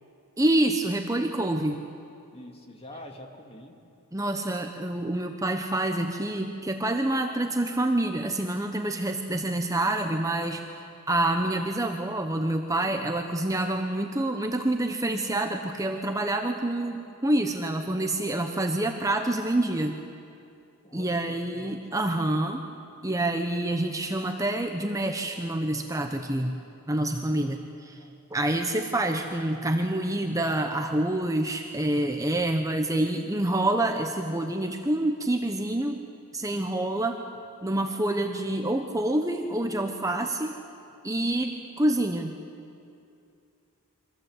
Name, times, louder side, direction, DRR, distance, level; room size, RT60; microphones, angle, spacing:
voice 1, 0.4-1.8 4.1-20.0 20.9-22.7 23.0-26.6 26.9-28.0 28.3-36.1 36.3-37.2 37.6-40.6 41.0-42.3, right 1 dB, 15° right, 4 dB, 1.0 m, -27 dB
voice 2, 2.3-3.8 20.8-22.0 28.0-28.1, left 1 dB, 25° left, 3 dB, 2.4 m, -46 dB
28.5 x 24.5 x 8.1 m, 2.6 s
head